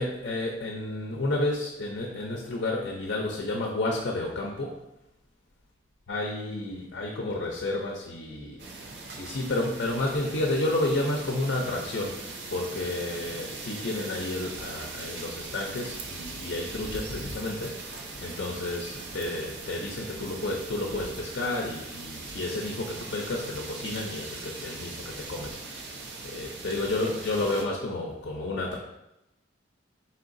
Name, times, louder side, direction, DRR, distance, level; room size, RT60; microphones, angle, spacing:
voice 1, 0.0-4.8 6.1-8.6 9.2-25.8 26.2-28.8, left 2 dB, 65° left, 0 dB, 0.5 m, -31 dB
sound 1, 8.6-27.7, right 3 dB, 60° right, 0.6 m, -40 dB
4.3 x 3.9 x 2.5 m, 0.90 s
head